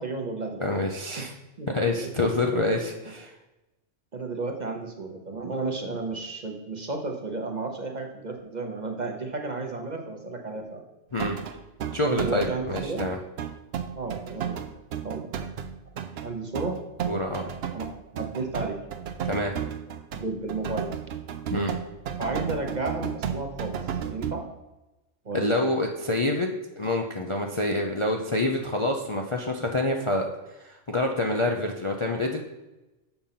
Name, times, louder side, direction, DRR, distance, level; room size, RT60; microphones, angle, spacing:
voice 1, 0.0-0.7 1.2-1.3 1.6-2.1 2.6-2.7 4.1-10.8 12.0-13.0 14.0-14.7 15.0-15.3 16.2-16.8 17.4-17.9 18.1-18.8 20.1-20.9 22.2-24.4 25.2-25.5, right 3 dB, 40° right, 3 dB, 0.9 m, -33 dB
voice 2, 0.6-1.3 1.7-3.3 11.1-11.4 11.9-13.2 17.1-17.4 19.2-19.5 21.5-21.7 25.3-26.5 26.8-32.4, left 2 dB, 35° left, 1 dB, 0.5 m, -27 dB
sound 1, 11.2-24.3, right 8 dB, 60° right, 0.8 m, -33 dB
6.9 x 5.4 x 5.7 m, 1.0 s
omnidirectional pair, 1.3 m